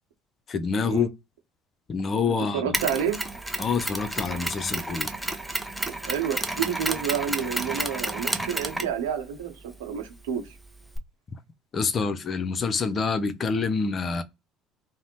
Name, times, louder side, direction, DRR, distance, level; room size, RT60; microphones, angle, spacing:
voice 1, 0.5-1.1 1.9-2.7 3.6-5.1 11.7-14.2, left 5 dB, 40° left, 0.5 m, -27 dB
voice 2, 2.5-3.2 6.0-10.4, right 8 dB, 75° right, 0.8 m, -29 dB
Mechanisms, 2.7-11.0, right 1 dB, 5° right, 0.5 m, -32 dB
2.5 x 2.0 x 2.9 m
hypercardioid pair, 60°, 0 cm